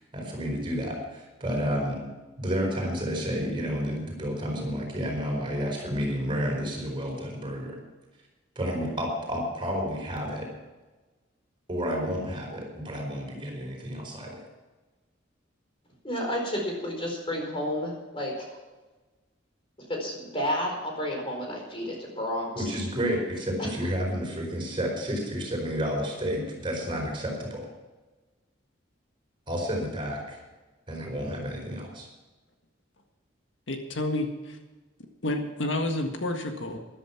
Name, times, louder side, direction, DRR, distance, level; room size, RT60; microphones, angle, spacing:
voice 1, 0.0-2.0 2.4-7.8 8.5-10.5 11.7-14.4 22.5-27.6 29.5-30.4 30.9-32.1, equal, 25° right, 0 dB, 4.6 m, -31 dB
voice 2, 16.0-18.6 19.9-22.7 23.6-23.7, equal, 30° left, 0 dB, 4.5 m, -31 dB
voice 3, 33.7-34.6 35.2-36.8, left 1 dB, 75° left, 4 dB, 1.7 m, -29 dB
13.5 x 12.0 x 5.9 m, 1.2 s
head